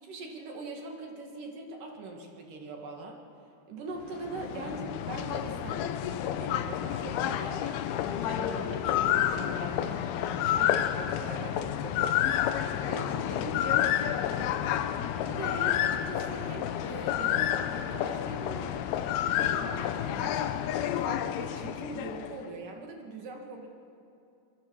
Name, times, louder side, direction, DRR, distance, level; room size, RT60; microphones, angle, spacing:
voice 1, 0.0-3.2 3.7-7.8 8.0-12.4 12.8-14.7 15.1-18.9 19.3-23.7, right 3 dB, 55° right, 1 dB, 3.2 m, -42 dB
sound 1, 4.0-22.4, left 11 dB, 80° left, 2.3 m, -30 dB
25.5 x 23.5 x 4.8 m, 2.8 s
omnidirectional pair, 5.3 m